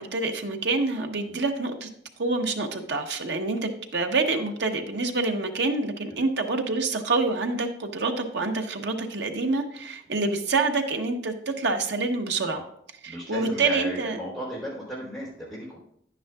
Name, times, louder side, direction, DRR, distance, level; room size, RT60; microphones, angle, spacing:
voice 1, 0.0-1.9 2.2-12.6 13.3-14.2, right 3 dB, 80° right, 4 dB, 1.0 m, -27 dB
voice 2, 13.0-15.8, equal, ahead, -6 dB, 4.0 m, -35 dB
10.5 x 9.3 x 2.4 m, 0.68 s
head